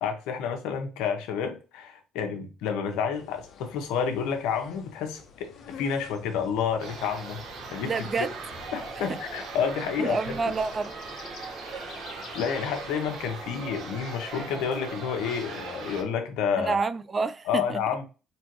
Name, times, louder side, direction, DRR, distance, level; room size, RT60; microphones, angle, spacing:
voice 1, 0.0-8.3 8.7-10.4 11.4-11.5 12.3-16.8 17.5-18.0, left 7 dB, 80° left, 0.9 m, -30 dB
sound 1, 3.1-13.7, left 6 dB, 60° left, 1.2 m, -49 dB
sound 2, 6.8-16.0, right 4 dB, 65° right, 1.2 m, -39 dB
voice 2, 7.8-8.3 9.1-9.2 10.0-10.9 16.6-17.8, right 4 dB, 35° right, 0.4 m, -28 dB
4.3 x 3.0 x 3.0 m
supercardioid pair, 85°, 0 cm